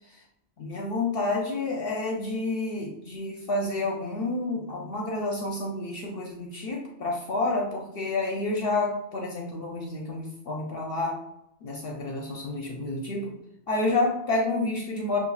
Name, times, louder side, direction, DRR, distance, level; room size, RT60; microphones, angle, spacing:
voice 1, 0.6-11.2 11.6-13.3 13.7-15.2, left 2 dB, 60° left, -1 dB, 0.8 m, -29 dB
6.7 x 2.5 x 2.3 m, 0.82 s
omnidirectional pair, 1.1 m